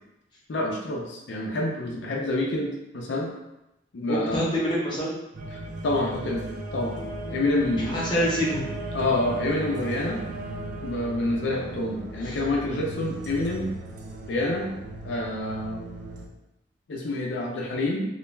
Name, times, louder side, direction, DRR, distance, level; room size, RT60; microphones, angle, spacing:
voice 1, 0.5-3.3 3.9-4.5 5.8-7.0 7.3-8.2 8.9-10.2 10.8-13.7 14.3-14.7 15.0-15.9 16.9-18.1, left 1 dB, 85° left, -1 dB, 0.5 m, -27 dB
voice 2, 4.1-5.2 7.7-8.6 12.2-12.4, equal, 25° left, -6 dB, 0.7 m, -26 dB
sound 1, 5.3-16.3, right 1 dB, 45° right, 0.4 m, -36 dB
2.3 x 2.2 x 3.0 m, 0.92 s
head